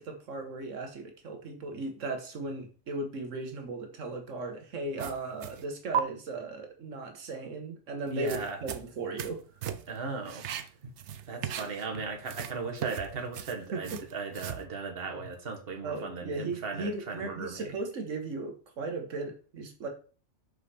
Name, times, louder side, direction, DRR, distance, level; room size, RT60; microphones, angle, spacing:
voice 1, 0.0-9.4 13.7-14.0 15.8-19.9, right 2 dB, 90° right, 4 dB, 1.6 m, -37 dB
sound 1, 5.0-5.6 5.9-6.0 8.1-9.4 9.6-10.0 10.2-12.0 12.2-14.6, right 9 dB, 70° right, 0.9 m, -36 dB
voice 2, 8.1-8.6 9.9-10.5 10.8-10.9 11.3-17.7, right 4 dB, 50° right, 2 dB, 1.5 m, -37 dB
6.4 x 5.3 x 4.3 m, 0.38 s
omnidirectional pair, 1.3 m